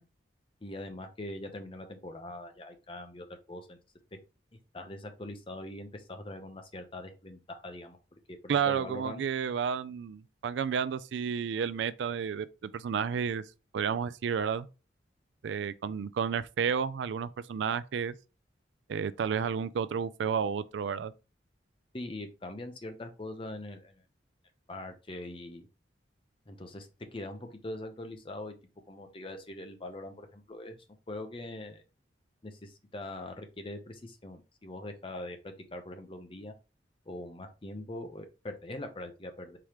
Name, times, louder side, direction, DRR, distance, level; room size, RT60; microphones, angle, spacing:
voice 1, 0.6-3.8 4.7-9.2 21.9-24.0 24.7-25.7 26.5-28.6 28.9-30.8 31.1-31.8 32.4-36.5 37.1-39.6, left 1 dB, 30° left, 0.7 m, -42 dB
voice 2, 8.5-13.4 13.7-14.7 15.4-18.1 18.9-21.1, right 7 dB, 70° right, 0.3 m, -31 dB
4.8 x 3.6 x 3.0 m
head